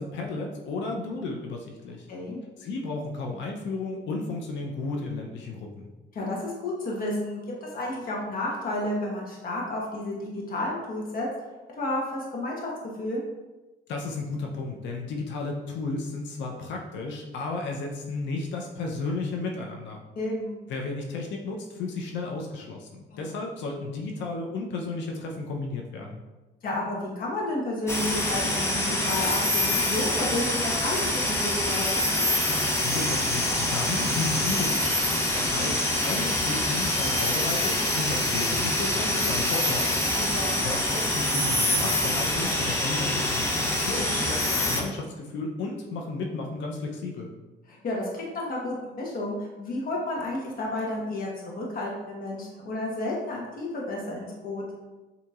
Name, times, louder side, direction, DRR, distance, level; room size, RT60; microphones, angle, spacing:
voice 1, 0.0-2.1 2.6-5.9 13.9-20.0 20.7-26.2 32.6-39.9 40.6-47.3, left 3 dB, 85° left, 0 dB, 0.7 m, -33 dB
voice 2, 2.1-2.4 6.1-11.3 11.8-12.7 13.0-13.2 20.1-20.6 23.1-23.3 26.6-32.0 40.2-40.6 47.7-51.3 51.6-54.7, left 1 dB, 50° left, -3 dB, 1.1 m, -31 dB
sound 1, 27.9-44.8, left 1 dB, 15° left, 0.7 m, -25 dB
6.8 x 2.8 x 2.4 m, 1.1 s
cardioid pair, 110°, 18 cm